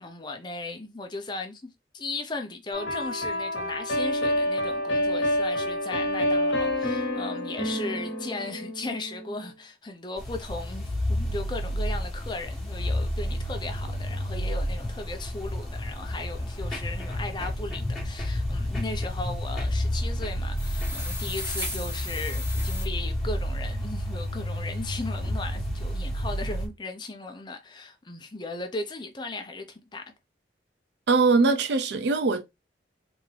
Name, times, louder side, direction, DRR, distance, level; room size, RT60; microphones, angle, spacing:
voice 1, 0.0-30.0, left 2 dB, 25° left, 0.6 m, -37 dB
sound 1, 2.7-9.5, left 1 dB, 85° left, 1.1 m, -28 dB
sound 2, 10.2-26.7, equal, 5° left, 1.4 m, -30 dB
sound 3, 20.6-22.9, left 1 dB, 15° right, 0.9 m, -35 dB
voice 2, 31.1-32.4, right 4 dB, 65° right, 0.5 m, -21 dB
3.5 x 2.6 x 3.3 m
head